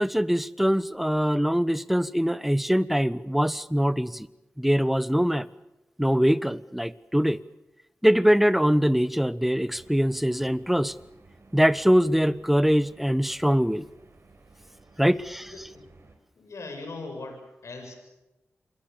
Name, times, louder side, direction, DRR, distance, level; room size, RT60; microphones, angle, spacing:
voice 1, 0.0-4.3 4.6-5.5 6.0-7.4 8.0-10.9 11.5-13.8 15.0-15.5, equal, 5° right, 17 dB, 1.2 m, -23 dB
sound 1, 9.5-16.2, right 3 dB, 60° right, 5.2 m, -55 dB
voice 2, 15.4-15.8 16.4-17.9, left 3 dB, 75° left, 4 dB, 7.2 m, -40 dB
28.0 x 22.5 x 7.0 m, 0.97 s
cardioid pair, 40°, 5 cm